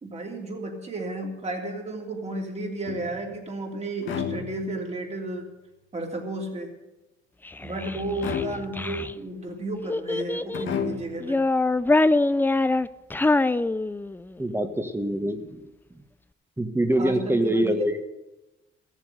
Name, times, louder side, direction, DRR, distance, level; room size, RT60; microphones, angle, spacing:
voice 1, 0.0-5.4 5.9-6.7 7.6-11.4 17.0-17.9, right 2 dB, 35° right, 1 dB, 3.1 m, -33 dB
sound 1, 2.9-3.4 4.0-5.0 8.2-9.0 10.5-11.3, left 7 dB, 80° left, 1.3 m, -32 dB
Child speech kid speaking, 7.5-9.1 9.9-10.8 11.2-14.3, left 2 dB, 10° left, 0.4 m, -24 dB
voice 2, 14.4-15.6 16.6-18.0, right 1 dB, 10° right, 7 dB, 1.5 m, -24 dB
14.5 x 7.3 x 7.9 m, 1.0 s
cardioid pair, 90°, 20 cm